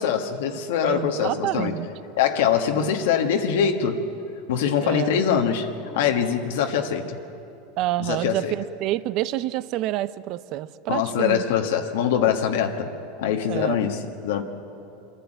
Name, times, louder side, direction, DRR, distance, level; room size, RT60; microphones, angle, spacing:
voice 1, 0.0-1.7 2.2-4.1 4.5-5.7 5.9-7.2 8.0-8.5 10.9-14.4, left 8 dB, 80° left, 3 dB, 1.3 m, -23 dB
voice 2, 0.8-1.9 4.8-5.2 7.8-11.4 13.5-13.9, right 15 dB, 50° right, 17 dB, 0.5 m, -28 dB
25.0 x 11.5 x 9.0 m, 2.9 s
supercardioid pair, 130°, 0 cm